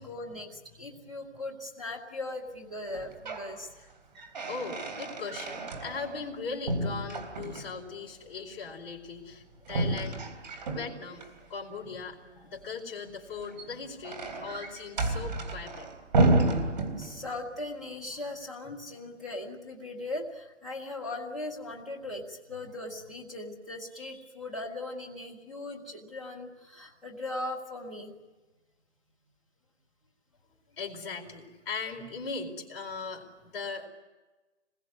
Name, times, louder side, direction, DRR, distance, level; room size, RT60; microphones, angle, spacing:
voice 1, 0.0-3.7 17.0-28.1, left 2 dB, ahead, -4 dB, 0.9 m, -39 dB
sound 1, 2.9-3.5 3.9-6.3 6.7-7.9 9.7-11.3 13.3-17.5, right 2 dB, 40° right, 3.7 m, -30 dB
voice 2, 4.5-10.2 10.7-15.9 30.7-33.9, left 4 dB, 25° left, -3 dB, 4.5 m, -39 dB
26.5 x 21.5 x 9.6 m, 1.2 s
hypercardioid pair, 170°, 36 cm